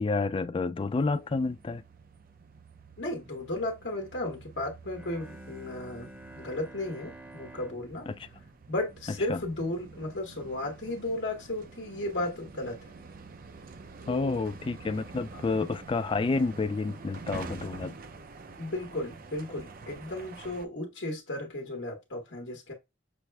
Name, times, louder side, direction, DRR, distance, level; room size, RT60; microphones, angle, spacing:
voice 1, 0.0-1.8 8.1-8.2 9.3-9.4 14.1-18.0, left 3 dB, 30° left, 0.3 m, -29 dB
sound 1, 0.8-20.7, right 4 dB, 50° right, 0.6 m, -48 dB
voice 2, 3.0-6.1 6.4-8.1 8.7-12.9 14.1-14.4 15.3-15.4 18.6-22.7, left 1 dB, 70° left, 1.1 m, -34 dB
Bowed string instrument, 4.8-9.7, right 1 dB, 10° right, 0.8 m, -50 dB
6.1 x 2.2 x 3.3 m
head